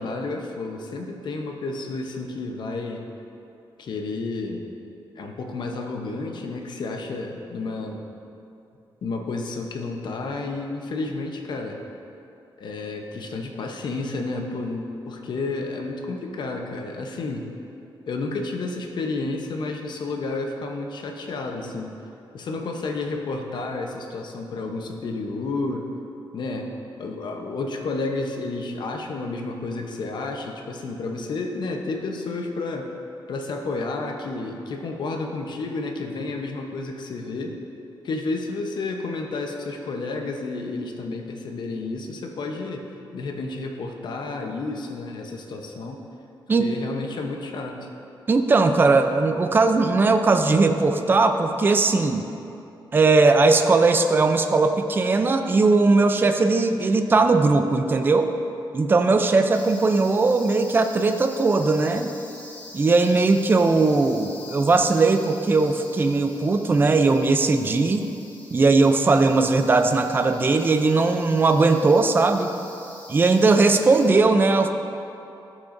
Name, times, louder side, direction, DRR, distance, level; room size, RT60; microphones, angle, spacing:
voice 1, 0.0-3.0 3.8-4.6 5.2-8.1 9.0-11.8 12.6-17.5 18.1-21.9 22.3-25.9 26.3-26.7 27.0-32.9 33.3-37.6 38.0-42.9 43.1-46.0 46.6-47.9, left 3 dB, 60° left, 2 dB, 0.8 m, -31 dB
voice 2, 48.3-52.3 52.9-58.3 58.7-62.1 62.7-68.1 68.5-72.5 73.1-74.7, right 3 dB, 25° right, 7 dB, 0.4 m, -19 dB
sound 1, 59.5-74.1, left 1 dB, 20° left, 1.1 m, -45 dB
14.0 x 6.0 x 2.6 m, 2.7 s
wide cardioid pair, 135°, 9 cm